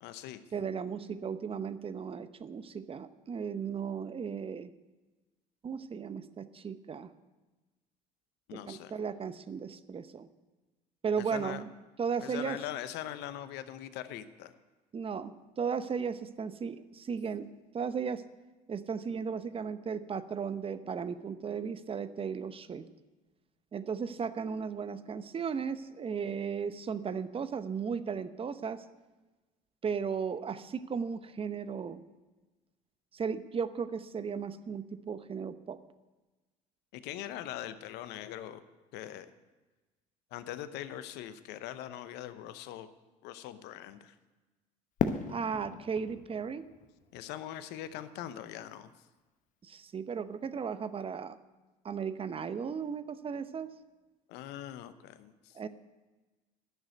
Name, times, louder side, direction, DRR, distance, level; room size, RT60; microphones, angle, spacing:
voice 1, 0.0-0.4 8.5-8.9 11.2-11.6 12.2-14.5 36.9-38.6 38.9-39.3 40.3-42.9 43.2-44.1 47.1-48.9 54.3-55.6, left 12 dB, 70° left, 12 dB, 0.8 m, -42 dB
voice 2, 0.5-4.7 5.6-7.1 8.5-10.3 11.0-11.7 12.0-12.6 14.9-17.5 17.7-18.2 18.7-22.9 23.7-28.8 29.8-32.0 33.1-35.8 45.3-46.6 49.6-51.4 51.8-53.7 55.5-55.7, right 6 dB, 30° right, 13 dB, 0.8 m, -35 dB
Fireworks, 45.0-48.0, left 6 dB, 45° left, 0.9 m, -36 dB
11.0 x 6.4 x 9.2 m, 1.2 s
hypercardioid pair, 75°, 18 cm